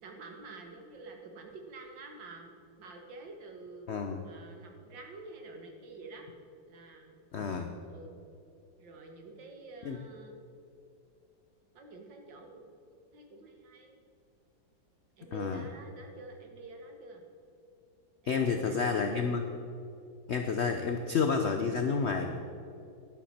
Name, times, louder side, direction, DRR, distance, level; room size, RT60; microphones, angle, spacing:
voice 1, 0.0-2.5 2.8-3.9 4.2-6.3 6.7-7.2 7.8-8.3 8.8-10.4 11.7-12.8 13.1-14.0 15.2-17.2 18.2-19.3, right 3 dB, 75° right, 2 dB, 2.1 m, -48 dB
voice 2, 3.9-4.2 7.3-7.7 9.8-10.0 15.3-15.6 18.3-19.4 20.3-22.4, left 5 dB, 75° left, 5 dB, 0.6 m, -30 dB
11.5 x 11.0 x 4.2 m, 2.6 s
omnidirectional pair, 2.1 m